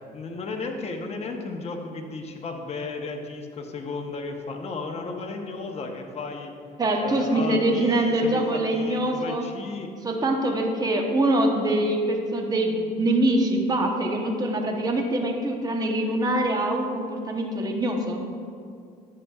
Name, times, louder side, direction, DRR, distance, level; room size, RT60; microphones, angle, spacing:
voice 1, 0.1-6.5 7.0-9.9, left 3 dB, 40° left, 3 dB, 1.0 m, -34 dB
voice 2, 6.8-9.4 10.0-18.2, right 1 dB, 20° right, 2 dB, 0.9 m, -24 dB
10.5 x 7.9 x 2.4 m, 2.3 s
cardioid pair, 110°, 17 cm